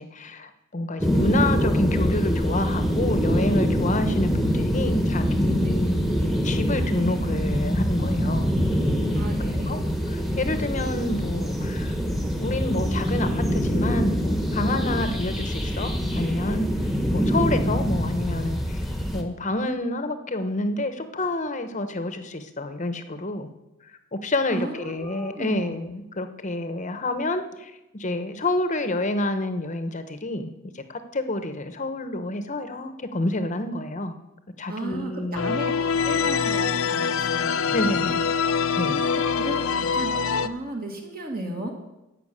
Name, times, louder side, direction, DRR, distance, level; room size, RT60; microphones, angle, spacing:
voice 1, 0.0-8.5 9.4-9.8 10.1-11.9 12.4-16.7 17.1-18.8 19.1-23.5 24.1-34.2 34.6-35.5 37.7-38.2 38.7-39.0, left 2 dB, 35° left, 9 dB, 1.0 m, -28 dB
sound 1, 1.0-19.2, equal, ahead, 1.3 m, -24 dB
voice 2, 9.2-9.8 24.5-25.7 34.7-35.7 36.0-38.1 38.9-40.2 40.4-41.7, right 1 dB, 45° right, 1 dB, 2.2 m, -35 dB
sound 2, 35.3-40.5, left 6 dB, 75° left, 0.6 m, -24 dB
14.0 x 5.9 x 8.6 m, 0.99 s
head